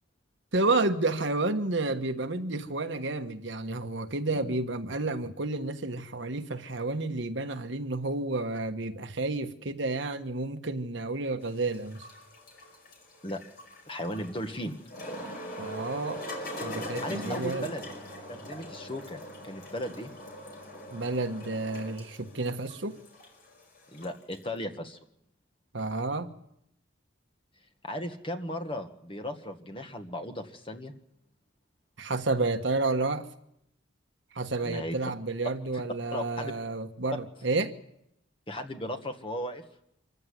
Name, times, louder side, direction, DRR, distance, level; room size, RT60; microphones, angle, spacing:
voice 1, 0.5-12.1 15.6-16.2 16.6-17.7 20.9-23.0 25.7-26.3 32.0-33.3 34.3-37.7, right 2 dB, 60° right, 7 dB, 1.3 m, -30 dB
sound 1, 11.4-24.5, equal, 50° left, 5.2 m, -42 dB
voice 2, 13.9-14.8 17.0-17.9 18.3-20.1 23.9-25.0 27.8-30.9 34.6-34.9 35.7-35.8 36.1-36.5 38.5-39.6, left 1 dB, 25° left, 5 dB, 1.7 m, -36 dB
25.0 x 15.0 x 9.7 m, 0.78 s
head